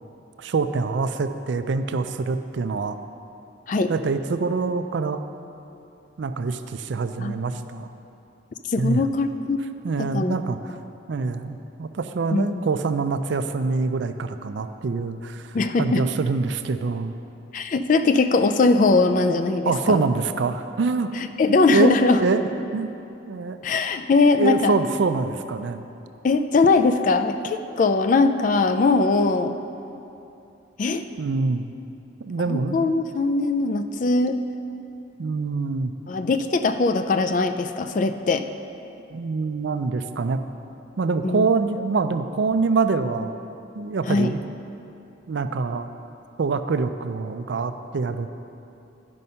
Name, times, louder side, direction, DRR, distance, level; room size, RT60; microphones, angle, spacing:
voice 1, 0.4-3.0 3.9-5.2 6.2-7.9 8.8-9.0 9.8-10.8 11.1-17.1 19.6-21.3 21.7-21.9 22.2-22.5 22.7-22.9 23.3-23.6 24.4-25.8 31.2-31.7 32.3-32.9 35.2-35.9 39.1-40.4 41.0-43.3 43.7-44.4 45.3-45.9 46.4-48.3, right 4 dB, 65° right, 9 dB, 0.4 m, -25 dB
voice 2, 8.7-9.6 10.0-10.4 12.3-12.6 15.5-16.0 17.5-20.0 21.2-22.2 23.6-24.7 26.2-29.6 30.8-31.1 32.5-34.4 36.1-38.5 41.2-41.5 44.1-44.3, left 3 dB, 40° left, 9 dB, 0.3 m, -21 dB
11.0 x 5.3 x 5.6 m, 2.8 s
head